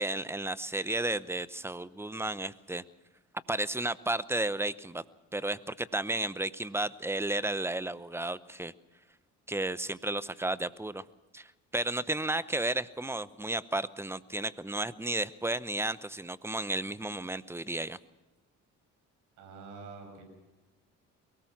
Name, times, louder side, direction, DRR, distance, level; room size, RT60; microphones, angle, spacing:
voice 1, 0.0-2.8 3.5-5.0 5.3-8.7 9.5-11.0 11.3-18.0, right 2 dB, 10° right, 16 dB, 0.8 m, -33 dB
voice 2, 19.4-20.2, right 4 dB, 90° right, 2 dB, 6.5 m, -46 dB
23.0 x 18.5 x 6.1 m, 1.1 s
cardioid pair, 90°, 30 cm